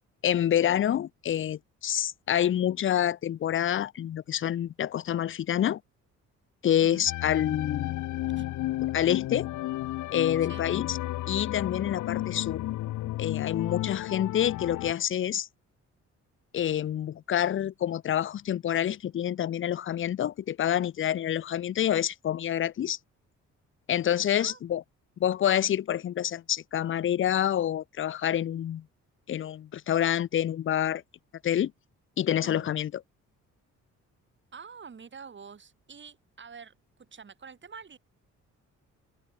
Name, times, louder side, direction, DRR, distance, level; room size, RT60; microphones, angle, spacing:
voice 1, 0.2-5.8 6.6-7.9 8.9-9.5 10.1-11.0 11.3-12.6 13.2-15.5 16.5-23.0 23.9-24.8 25.2-28.8 29.3-31.0 31.4-31.7 32.2-32.9, left 10 dB, 45° left, 0.5 m, -27 dB
sound 1, 7.1-14.9, left 16 dB, 75° left, 0.8 m, -32 dB
voice 2, 34.5-36.7 37.0-38.0, right 6 dB, 40° right, 4.9 m, -46 dB
open air
cardioid pair, 90°, 30 cm